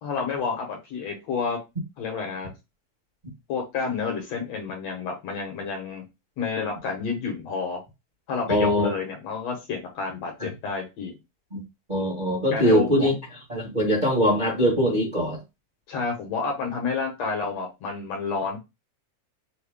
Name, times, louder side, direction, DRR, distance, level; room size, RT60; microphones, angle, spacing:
voice 1, 0.0-1.6 2.0-2.5 3.5-6.0 6.4-7.8 8.3-11.2 12.5-13.1 15.9-18.6, left 5 dB, 65° left, 2.0 m, -30 dB
voice 2, 8.5-8.9 10.4-10.5 11.5-11.6 11.9-13.1 13.5-15.4, equal, 25° right, 1.0 m, -22 dB
6.2 x 2.2 x 3.5 m
omnidirectional pair, 3.5 m